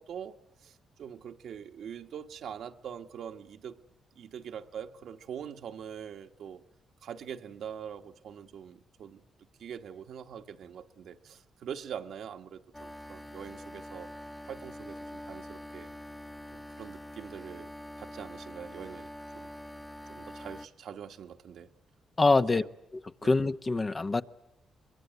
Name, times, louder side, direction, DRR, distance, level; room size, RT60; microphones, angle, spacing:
voice 1, 0.0-3.8 4.1-6.6 7.0-9.2 9.6-14.1 14.5-15.9 16.5-17.7 18.0-19.5 20.1-21.7 22.5-22.7 23.2-23.4, right 8 dB, 70° right, 1.3 m, -43 dB
sound 1, 12.7-20.7, left 1 dB, 10° left, 1.2 m, -45 dB
voice 2, 22.2-22.6 22.9-24.2, left 3 dB, 30° left, 1.0 m, -25 dB
23.5 x 22.0 x 9.4 m
supercardioid pair, 65°, 0 cm